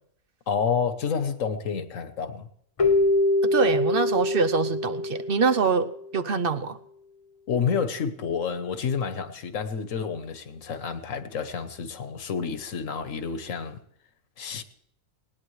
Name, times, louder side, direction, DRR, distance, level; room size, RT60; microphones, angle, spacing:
voice 1, 0.5-2.5 7.5-13.8 14.4-14.6, left 6 dB, 80° left, 1.4 m, -29 dB
Keyboard (musical), 2.8-6.0, left 2 dB, 30° left, 0.7 m, -24 dB
voice 2, 3.4-6.8, right 5 dB, 50° right, 0.8 m, -24 dB
19.5 x 18.5 x 3.2 m
omnidirectional pair, 1.4 m